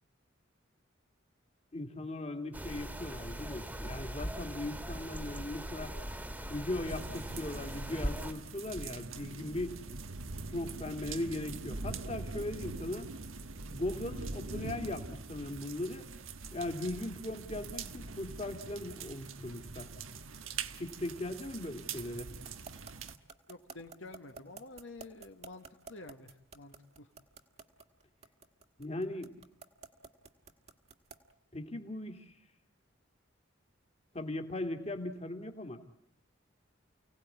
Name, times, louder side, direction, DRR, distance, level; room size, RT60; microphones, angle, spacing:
voice 1, 1.7-5.9 6.5-9.8 10.5-13.1 13.7-16.1 16.5-19.9 20.8-22.3 28.8-29.4 31.5-32.3 34.1-35.8, left 1 dB, 30° left, 5 dB, 2.2 m, -39 dB
sound 1, 2.5-8.3, equal, 10° right, 1.8 m, -40 dB
sound 2, 6.9-23.2, right 4 dB, 90° right, 1.4 m, -43 dB
sound 3, 22.4-31.3, right 4 dB, 30° right, 1.6 m, -50 dB
voice 2, 23.5-27.1, left 2 dB, 75° left, 5 dB, 1.6 m, -50 dB
29.5 x 18.0 x 9.6 m, 0.79 s
head